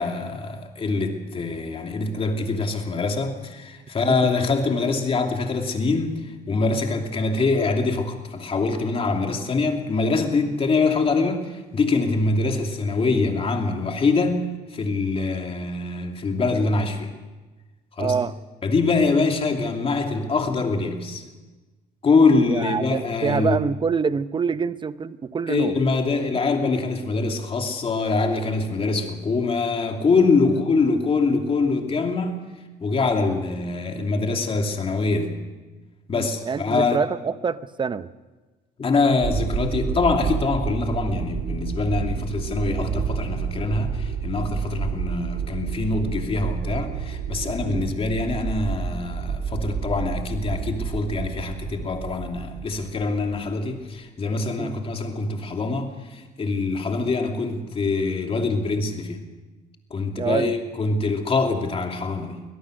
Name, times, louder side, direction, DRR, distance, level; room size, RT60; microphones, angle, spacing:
voice 1, 0.0-17.1 17.9-18.2 18.6-21.2 22.0-23.6 25.5-32.4 32.8-35.4 36.1-37.0 38.8-59.2 59.9-62.4, left 3 dB, 35° left, 3 dB, 2.8 m, -24 dB
voice 2, 18.0-18.3 22.5-25.8 30.4-30.6 36.1-38.1 47.6-47.9 54.6-54.8 60.2-60.6, right 5 dB, 30° right, 14 dB, 0.8 m, -26 dB
sound 1, 39.2-53.4, right 6 dB, 55° right, 2.0 m, -29 dB
23.5 x 18.0 x 6.4 m, 1.2 s
cardioid pair, 110°, 17 cm